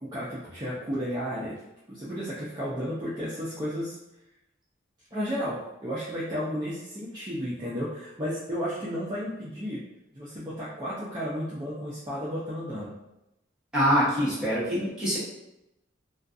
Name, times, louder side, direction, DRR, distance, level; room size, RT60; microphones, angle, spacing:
voice 1, 0.0-1.6 1.9-4.0 5.1-9.8 10.1-12.9 14.4-14.7, equal, 20° right, -9 dB, 0.4 m, -33 dB
voice 2, 13.7-15.2, equal, 5° right, -10 dB, 0.9 m, -24 dB
2.4 x 2.3 x 2.5 m, 0.90 s
head